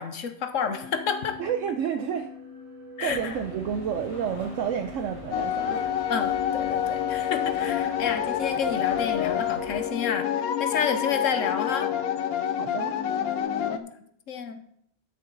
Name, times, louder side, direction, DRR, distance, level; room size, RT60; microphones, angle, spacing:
voice 1, 0.0-1.4 3.0-3.3 6.1-11.9 13.7-13.9 14.3-14.6, left 6 dB, 65° left, 8 dB, 1.2 m, -30 dB
sound 1, 0.7-13.4, left 7 dB, 50° right, 2.5 m, -44 dB
voice 2, 1.4-2.3 3.0-5.8 12.6-13.0, right 8 dB, 70° right, 6 dB, 1.0 m, -30 dB
sound 2, 3.0-9.9, left 1 dB, 20° left, 2.2 m, -44 dB
sound 3, 5.3-13.8, left 9 dB, 85° left, 1.2 m, -27 dB
12.0 x 6.9 x 4.0 m, 0.69 s
omnidirectional pair, 1.5 m